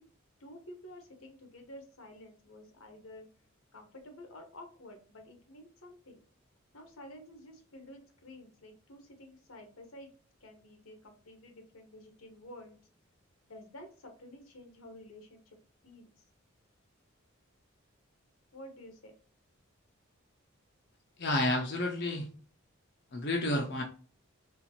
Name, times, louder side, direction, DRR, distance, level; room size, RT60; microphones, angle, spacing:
voice 1, 0.4-3.3 3.7-6.2 6.7-10.1 10.4-12.8 13.5-15.6 15.8-16.1 18.5-19.1, left 1 dB, 85° left, 5 dB, 1.2 m, -51 dB
voice 2, 21.2-22.3 23.1-23.8, left 1 dB, 50° left, 2 dB, 0.6 m, -30 dB
4.3 x 3.2 x 2.9 m, 0.41 s
head